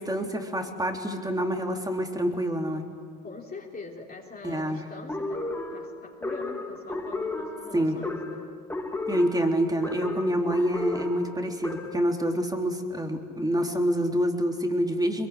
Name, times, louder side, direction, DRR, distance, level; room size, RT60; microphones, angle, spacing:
voice 1, 0.0-2.9 4.4-4.8 7.7-8.0 9.1-15.3, equal, 10° right, 3 dB, 3.5 m, -27 dB
voice 2, 3.2-5.4 5.7-8.5, left 3 dB, 30° left, -2 dB, 3.7 m, -43 dB
sound 1, 5.1-12.1, left 2 dB, 5° left, 3.6 m, -34 dB
22.5 x 22.0 x 9.9 m, 2.1 s
supercardioid pair, 85°, 32 cm